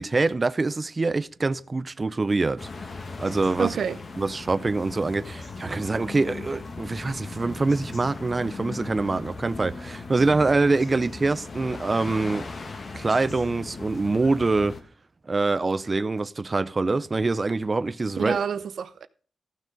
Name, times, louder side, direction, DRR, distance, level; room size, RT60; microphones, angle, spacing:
voice 1, 0.0-2.7 3.2-3.8 4.2-12.5 12.9-14.8 15.3-18.4, right 3 dB, 30° right, 0.4 m, -25 dB
sound 1, 2.6-14.8, left 3 dB, 45° left, 1.4 m, -38 dB
voice 2, 3.6-4.0 18.2-19.1, right 7 dB, 75° right, 0.6 m, -28 dB
14.5 x 6.3 x 5.1 m
wide cardioid pair, 115°, 0 cm